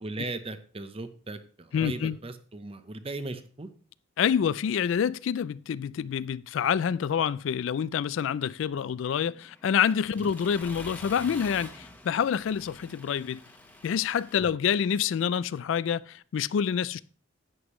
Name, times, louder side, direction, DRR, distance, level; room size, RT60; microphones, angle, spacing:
voice 1, 0.0-3.7 10.2-10.3 14.4-14.6, right 2 dB, 30° right, 0.7 m, -38 dB
voice 2, 1.7-2.2 4.2-13.4 13.8-17.0, left 8 dB, 65° left, 0.3 m, -27 dB
Accelerating revving vroom, 9.1-14.4, left 1 dB, 10° left, 1.1 m, -47 dB
11.0 x 8.2 x 3.1 m
head